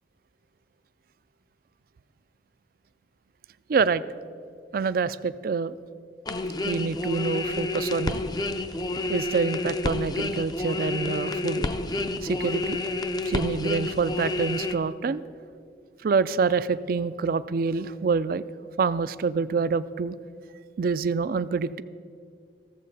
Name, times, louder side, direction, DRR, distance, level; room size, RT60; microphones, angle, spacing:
voice 1, 3.7-4.0 4.7-5.7 6.6-8.2 9.1-11.7 12.2-12.8 13.2-15.2 16.0-18.4 18.8-20.2 20.8-21.8, right 5 dB, 55° right, 16 dB, 0.4 m, -26 dB
sound 1, 6.3-14.7, left 2 dB, 25° left, 0.4 m, -29 dB
15.5 x 7.4 x 5.4 m, 2.3 s
head